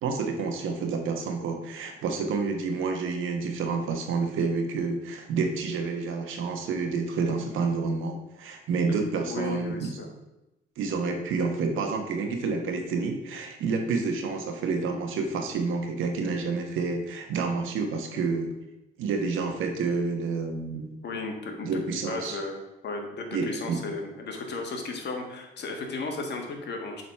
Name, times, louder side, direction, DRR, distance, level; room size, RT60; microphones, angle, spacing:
voice 1, 0.0-10.0 10.8-18.5 19.0-20.9 21.6-22.4 23.3-23.8, right 4 dB, 85° right, 4 dB, 1.3 m, -29 dB
voice 2, 9.3-10.1 21.0-21.7 22.1-27.0, left 3 dB, 60° left, 2 dB, 1.7 m, -35 dB
7.5 x 4.1 x 5.8 m, 0.96 s
cardioid pair, 90°, 20 cm